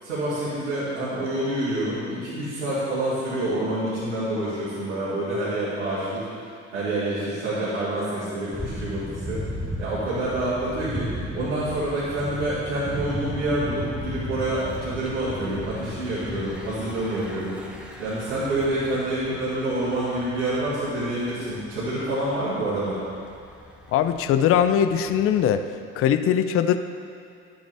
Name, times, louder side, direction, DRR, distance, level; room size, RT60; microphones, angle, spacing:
voice 1, 0.0-6.3 6.7-9.4 9.8-17.6 18.0-23.0, right 1 dB, 90° right, -13 dB, 2.4 m, -27 dB
Thunder / Bicycle, 8.5-25.7, equal, 5° right, 1.1 m, -37 dB
voice 2, 23.9-25.6 26.0-26.8, left 9 dB, 40° left, 10 dB, 0.5 m, -20 dB
11.0 x 7.6 x 3.4 m, 2.4 s
hypercardioid pair, 65°, 35 cm